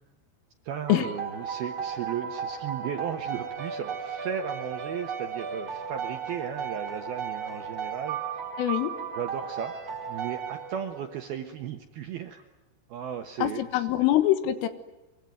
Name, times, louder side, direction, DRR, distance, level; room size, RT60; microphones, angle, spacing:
voice 1, 0.6-8.4 9.1-9.7 10.1-12.5 12.9-13.9, right 8 dB, 70° right, 5 dB, 2.4 m, -35 dB
sound 1, 0.9-11.3, right 6 dB, 40° right, 3.0 m, -35 dB
voice 2, 8.6-8.9 13.4-14.7, left 13 dB, 75° left, 11 dB, 3.9 m, -24 dB
24.5 x 24.0 x 9.4 m, 1.0 s
omnidirectional pair, 6.0 m